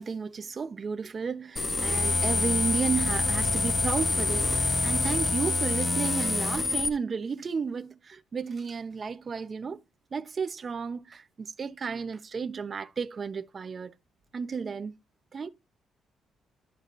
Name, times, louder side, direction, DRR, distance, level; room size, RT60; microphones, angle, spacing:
voice 1, 0.0-9.8 10.1-13.9 14.3-14.9 15.3-15.5, right 5 dB, 40° right, 0.9 m, -33 dB
sound 1, 1.6-6.9, left 3 dB, 25° left, 1.2 m, -26 dB
13.0 x 5.0 x 2.6 m
cardioid pair, 90°, 0 cm